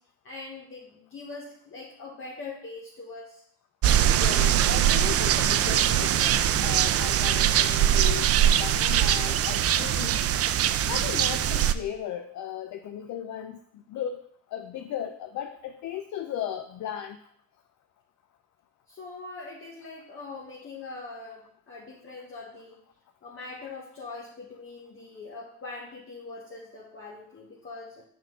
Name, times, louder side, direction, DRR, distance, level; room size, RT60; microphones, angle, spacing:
voice 1, 0.2-3.4 18.9-22.8 23.2-28.0, left 3 dB, 45° left, -4 dB, 1.3 m, -42 dB
sound 1, 3.8-11.7, right 10 dB, 50° right, 0.4 m, -22 dB
voice 2, 4.1-10.3 10.9-17.2, left 10 dB, 70° left, 6 dB, 0.5 m, -36 dB
5.9 x 3.7 x 6.0 m, 0.67 s
cardioid pair, 90°, 30 cm